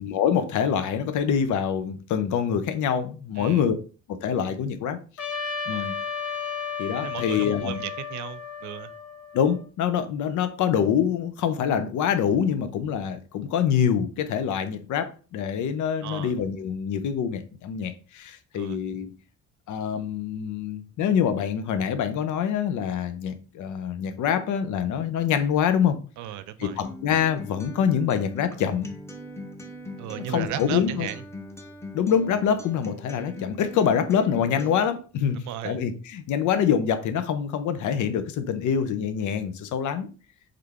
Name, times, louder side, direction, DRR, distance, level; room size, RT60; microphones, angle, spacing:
voice 1, 0.0-3.8 4.1-5.0 5.7-5.9 6.8-7.8 9.3-19.1 19.7-26.0 26.6-28.9 30.2-31.1 31.9-40.1, left 8 dB, 75° left, 0.7 m, -25 dB
Trumpet, 5.2-9.6, left 6 dB, 50° left, 1.3 m, -33 dB
voice 2, 7.0-8.9 16.0-16.3 18.5-18.8 26.2-26.8 30.0-31.2 35.4-35.8, right 11 dB, 75° right, 0.5 m, -35 dB
Acoustic guitar, 26.8-34.8, left 1 dB, 10° left, 0.8 m, -40 dB
3.8 x 3.3 x 3.5 m
cardioid pair, 90°, 30 cm